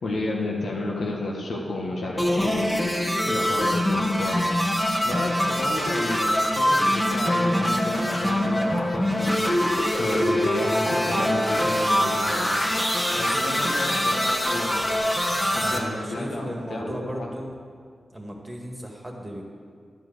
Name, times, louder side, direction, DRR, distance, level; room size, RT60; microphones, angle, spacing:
voice 1, 0.0-2.7 3.2-4.5 5.0-9.7 10.0-12.5 13.1-14.9 15.5-17.3, left 2 dB, 80° left, -2 dB, 1.2 m, -31 dB
sound 1, 2.2-15.8, equal, 20° left, 1.2 m, -24 dB
voice 2, 13.2-13.9 15.6-17.6 18.1-19.4, equal, 15° right, 0 dB, 1.7 m, -36 dB
11.5 x 4.7 x 7.9 m, 2.1 s
cardioid pair, 70°, 0 cm